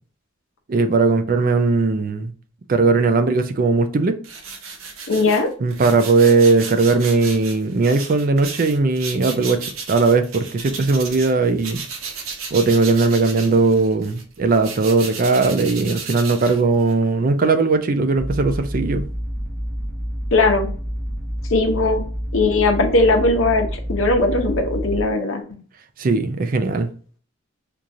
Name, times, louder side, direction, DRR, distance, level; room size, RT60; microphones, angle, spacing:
voice 1, 0.7-2.3 2.7-4.2 5.6-11.8 12.5-19.1 26.0-26.9, right 3 dB, 40° right, 0.4 m, -18 dB
sound 1, 4.2-11.3 11.6-17.0, right 5 dB, 80° right, 0.7 m, -34 dB
voice 2, 5.1-5.5 20.3-20.7 21.5-22.0 22.3-25.4, left 2 dB, 70° left, 0.8 m, -18 dB
sound 2, 18.2-25.0, equal, ahead, 0.7 m, -28 dB
4.5 x 2.5 x 2.7 m
head